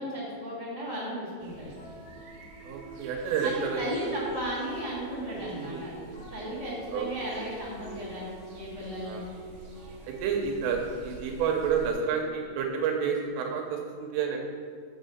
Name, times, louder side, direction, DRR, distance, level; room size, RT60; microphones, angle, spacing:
voice 1, 0.0-1.7 3.4-5.9 6.3-8.3 8.5-9.2, equal, 80° left, -8 dB, 0.9 m, -35 dB
sound 1, 1.4-11.9, right 5 dB, 70° right, 2.6 m, -49 dB
sound 2, 1.8-10.8, right 2 dB, 60° left, 1.5 m, -48 dB
voice 2, 2.6-4.1 5.3-6.3 6.9-7.4 9.1-9.2 10.0-14.4, right 6 dB, 85° right, 1 dB, 3.2 m, -30 dB
6.5 x 6.3 x 6.8 m, 2.1 s
omnidirectional pair, 5.9 m